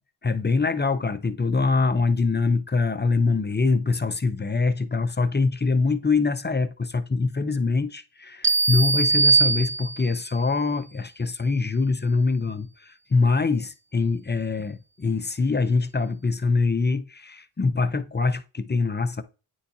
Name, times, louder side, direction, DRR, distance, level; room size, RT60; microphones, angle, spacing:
voice 1, 0.2-19.2, left 4 dB, 20° left, 0.6 m, -24 dB
sound 1, 8.4-10.3, right 3 dB, 25° right, 0.4 m, -21 dB
9.2 x 4.3 x 2.7 m
cardioid pair, 70°, 49 cm